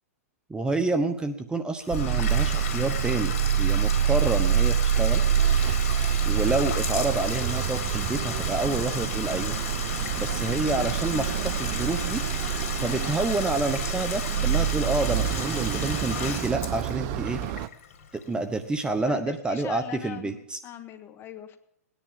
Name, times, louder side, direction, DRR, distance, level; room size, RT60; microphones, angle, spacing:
voice 1, 0.5-5.2 6.2-9.5 10.2-12.2 12.8-17.4 18.3-20.6, right 3 dB, 10° right, 9 dB, 1.0 m, -28 dB
Bathtub (filling or washing), 1.8-18.6, left 7 dB, 60° left, 2.9 m, -35 dB
sound 1, 1.9-17.7, right 9 dB, 40° right, 0.7 m, -26 dB
voice 2, 10.3-10.6 12.8-13.1 19.0-21.6, left 9 dB, 30° left, 9 dB, 1.7 m, -42 dB
18.5 x 10.0 x 7.5 m, 0.73 s
hypercardioid pair, 115°, 8 cm